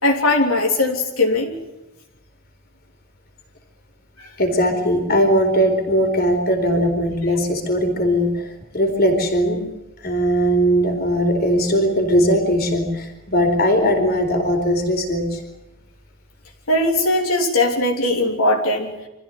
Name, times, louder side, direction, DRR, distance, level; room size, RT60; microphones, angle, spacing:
voice 1, 0.0-1.6 4.2-4.3 16.7-18.9, left 2 dB, 80° left, 0 dB, 3.5 m, -19 dB
voice 2, 4.4-8.4 8.7-9.6 10.0-15.4, equal, 45° left, 5 dB, 4.4 m, -19 dB
26.0 x 15.0 x 9.4 m, 0.98 s
head